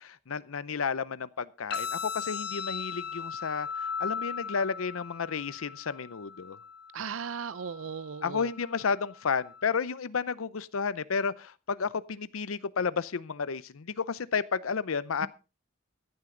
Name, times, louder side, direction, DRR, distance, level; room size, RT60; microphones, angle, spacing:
voice 1, 0.0-6.6 8.2-15.3, left 5 dB, 90° left, 0.7 m, -32 dB
sound 1, 1.7-9.7, left 6 dB, 55° left, 2.3 m, -38 dB
voice 2, 6.9-8.5 15.2-15.3, right 6 dB, 75° right, 0.6 m, -37 dB
15.0 x 11.0 x 3.8 m
head